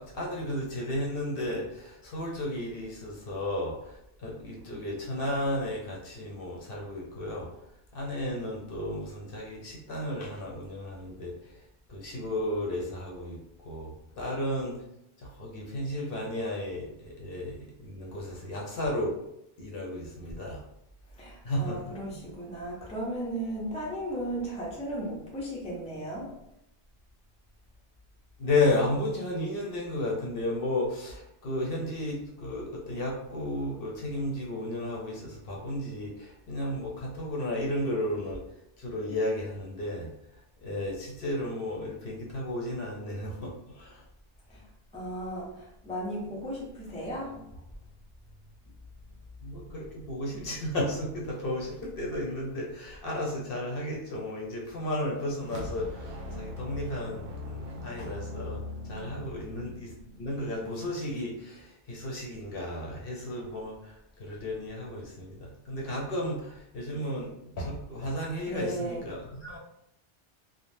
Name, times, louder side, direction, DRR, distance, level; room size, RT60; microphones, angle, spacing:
voice 1, 0.0-7.5 7.9-11.6 11.9-14.8 15.2-19.1 19.6-20.6 21.4-22.3 28.4-38.4 38.8-40.1 40.6-44.0 49.4-58.6 58.9-59.9 60.2-69.6, left 1 dB, 60° left, -3 dB, 0.8 m, -33 dB
voice 2, 21.2-26.3 44.5-44.6 44.9-47.5 68.5-69.0, right 1 dB, 10° left, -4 dB, 0.5 m, -35 dB
sound 1, 55.4-60.8, left 2 dB, 70° right, 0.9 m, -40 dB
3.3 x 2.1 x 2.6 m, 0.80 s
omnidirectional pair, 1.2 m